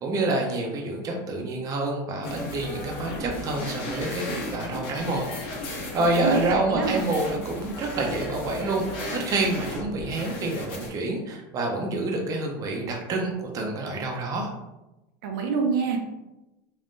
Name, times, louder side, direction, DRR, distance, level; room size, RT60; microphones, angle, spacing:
voice 1, 0.0-5.3 5.9-14.5, right 2 dB, 30° right, 1 dB, 0.6 m, -28 dB
sound 1, 2.2-10.9, left 1 dB, 50° left, 0.9 m, -35 dB
voice 2, 6.2-7.1 15.2-16.0, right 4 dB, 75° right, 2 dB, 0.6 m, -26 dB
3.5 x 2.2 x 2.6 m, 0.99 s
supercardioid pair, 130°, 11 cm